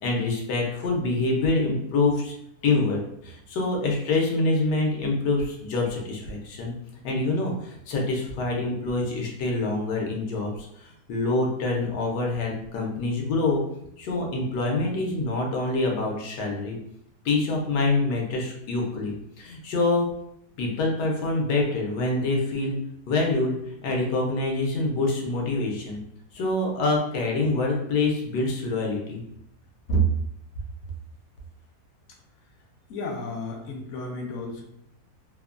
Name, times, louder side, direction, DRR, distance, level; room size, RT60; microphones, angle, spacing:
voice 1, 0.0-2.3 2.6-6.7 7.0-13.6 14.0-16.8 17.2-20.1 20.6-22.8 23.1-26.0 26.3-29.2 29.9-30.0, left 2 dB, 85° left, -1 dB, 1.3 m, -26 dB
voice 2, 32.9-34.6, left 3 dB, 65° left, 0 dB, 0.7 m, -34 dB
3.1 x 2.1 x 2.4 m, 0.75 s
omnidirectional pair, 1.8 m